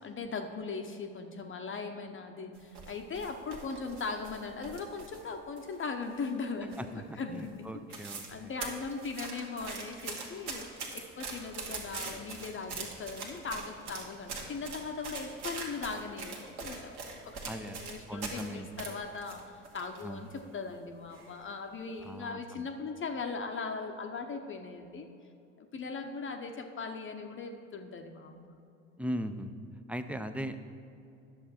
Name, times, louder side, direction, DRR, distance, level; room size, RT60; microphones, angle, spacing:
voice 1, 0.0-16.9 17.2-25.1 25.6-28.5, left 4 dB, 30° left, 4 dB, 0.7 m, -39 dB
sound 1, 2.6-5.3 5.6-6.4 6.7-7.1 7.4-7.5 7.7-8.3 8.6-18.5 18.8-20.0 20.4-20.5 21.1-21.4 21.8-22.0, right 4 dB, 65° right, 1.7 m, -42 dB
voice 2, 6.8-8.5 17.4-17.8 18.1-18.7 20.0-20.2 22.0-22.7 29.0-29.5 29.9-30.7, equal, 5° right, 9 dB, 0.4 m, -39 dB
10.0 x 6.9 x 4.3 m, 2.6 s
hypercardioid pair, 60°, 40 cm